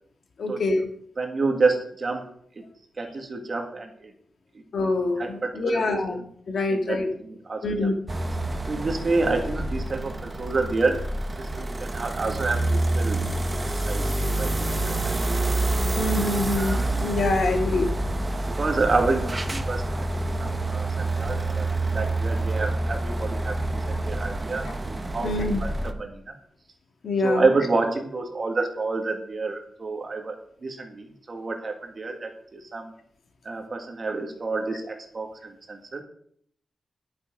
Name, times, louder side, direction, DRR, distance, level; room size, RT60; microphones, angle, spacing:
voice 1, 0.4-0.8 4.7-6.2 6.5-7.1 7.6-7.9 16.0-17.9 25.2-25.6 27.0-27.5, left 2 dB, 60° left, 4 dB, 1.9 m, -25 dB
voice 2, 1.2-2.3 3.0-4.1 5.2-5.8 6.7-7.9 8.7-15.1 16.6-16.9 18.4-19.8 20.4-26.3 27.2-32.9 33.4-36.0, right 3 dB, 35° right, 3 dB, 1.9 m, -29 dB
sound 1, 8.1-25.9, right 2 dB, 20° right, 1.0 m, -27 dB
12.0 x 6.9 x 5.2 m, 0.63 s
wide cardioid pair, 140°, 0 cm